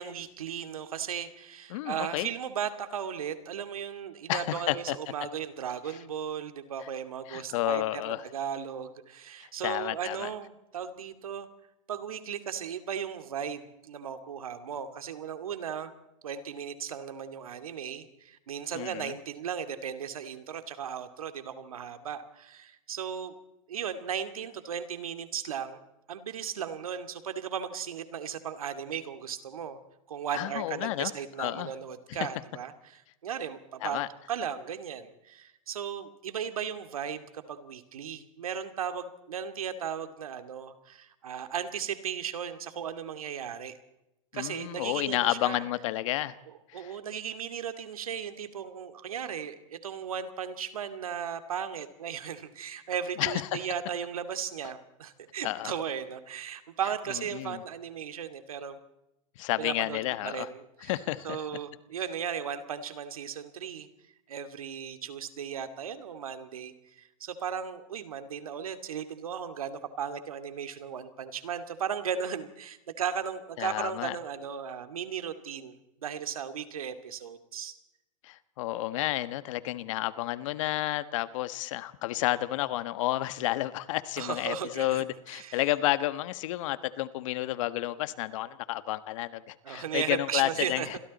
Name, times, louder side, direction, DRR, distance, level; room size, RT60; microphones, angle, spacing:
voice 1, 0.0-11.5 11.9-15.9 16.2-23.4 23.7-25.8 26.1-29.8 30.1-34.0 34.3-43.7 44.3-45.6 46.5-58.8 59.6-60.9 61.2-63.9 64.3-77.7 84.2-85.1 85.3-85.6 89.6-91.0, right 8 dB, 85° right, 9 dB, 2.4 m, -36 dB
voice 2, 1.7-2.3 4.3-5.0 7.3-8.2 9.4-10.3 18.7-19.2 30.3-31.1 31.4-31.7 32.1-32.2 33.8-34.1 44.3-46.3 46.7-46.9 53.2-53.5 55.4-55.7 57.3-57.6 59.4-60.5 60.9-61.4 73.6-74.2 78.2-91.0, left 16 dB, 65° left, 13 dB, 1.4 m, -31 dB
29.0 x 23.0 x 4.2 m, 0.88 s
hypercardioid pair, 110°, 18 cm